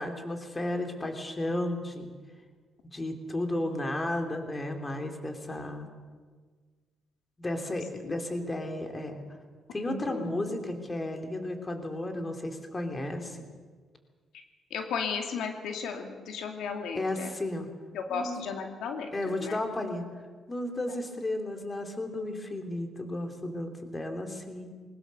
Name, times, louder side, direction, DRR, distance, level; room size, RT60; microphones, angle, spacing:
voice 1, 0.0-2.1 2.9-5.9 7.4-9.2 9.7-13.5 16.9-17.7 18.1-18.3 19.1-20.1 20.5-24.7, left 1 dB, 20° left, 5 dB, 3.3 m, -33 dB
voice 2, 9.8-10.2 14.3-14.4 14.7-17.3 17.9-19.6, left 6 dB, 80° left, 4 dB, 2.2 m, -35 dB
22.0 x 19.5 x 7.0 m, 1.5 s
cardioid pair, 90°, 0 cm